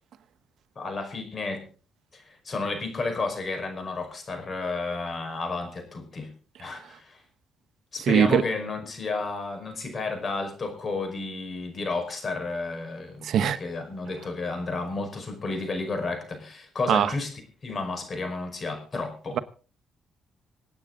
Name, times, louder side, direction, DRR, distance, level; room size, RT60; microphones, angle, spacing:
voice 1, 0.7-1.6 2.1-6.3 6.6-7.2 7.9-17.3 17.6-19.4, left 3 dB, 40° left, 5.1 m, -32 dB
voice 2, 8.1-8.4 13.2-13.6 16.9-17.1, right 8 dB, 70° right, 1.1 m, -21 dB
26.5 x 8.9 x 3.9 m
cardioid pair, 90°, 0 cm